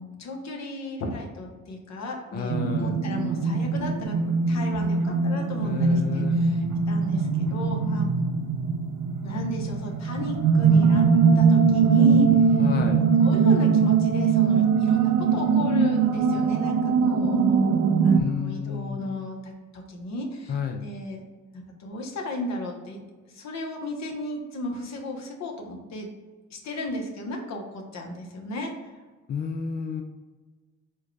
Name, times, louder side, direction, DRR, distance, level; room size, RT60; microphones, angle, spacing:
voice 1, 0.0-2.5 2.8-8.1 9.2-11.0 11.4-12.6 13.2-16.8 17.0-17.6 18.0-21.2 21.5-26.1 26.5-28.9, left 1 dB, 60° left, 1 dB, 1.0 m, -34 dB
voice 2, 2.3-2.9 5.6-6.6 12.6-13.1 18.1-19.0 20.5-20.8 29.3-30.0, left 6 dB, 35° left, 5 dB, 0.4 m, -30 dB
sound 1, 2.5-18.2, right 5 dB, 75° right, 0.5 m, -21 dB
4.4 x 2.3 x 4.6 m, 1.3 s
cardioid pair, 90°, 30 cm